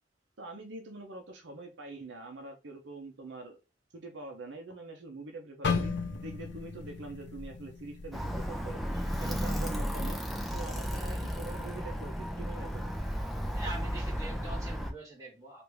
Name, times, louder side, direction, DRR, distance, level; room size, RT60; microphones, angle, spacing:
voice 1, 0.4-3.6 3.9-5.9 6.2-8.8 9.2-10.2 10.5-12.9, right 2 dB, 70° right, 0.6 m, -44 dB
sound 1, 5.6-9.7 10.0-10.3 10.9-11.3, left 4 dB, 65° left, 0.6 m, -36 dB
Alarm, 8.1-14.9, equal, ahead, 0.5 m, -34 dB
voice 2, 8.9-9.3 11.0-11.4 13.5-15.6, right 2 dB, 20° right, 1.6 m, -45 dB
3.4 x 2.5 x 3.1 m
head